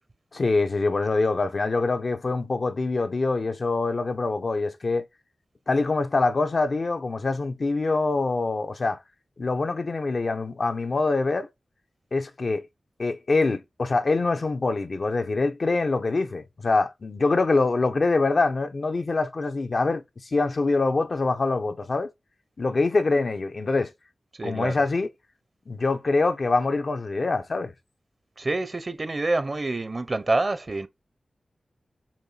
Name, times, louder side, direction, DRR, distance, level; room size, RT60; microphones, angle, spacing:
voice 1, 0.3-5.0 5.7-9.0 9.4-11.5 12.1-12.7 13.0-20.0 20.3-22.1 22.6-23.9 24.4-25.1 25.7-27.7, left 3 dB, 55° left, 0.9 m, -24 dB
voice 2, 24.4-24.8 28.4-30.9, right 2 dB, 40° right, 0.9 m, -27 dB
7.4 x 2.7 x 5.7 m
cardioid pair, 60°, 0 cm